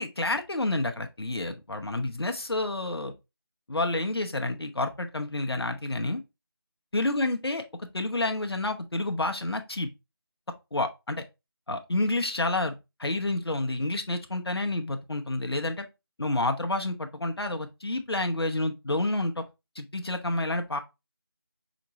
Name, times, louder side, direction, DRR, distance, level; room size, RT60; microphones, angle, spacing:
voice 1, 0.0-3.1 3.7-6.2 6.9-7.6 7.9-9.9 10.7-11.2 11.7-15.9 16.2-19.4 19.8-20.8, left 2 dB, 80° left, 0.6 m, -29 dB
5.1 x 3.0 x 2.6 m
figure-of-eight pair, 165°, 13 cm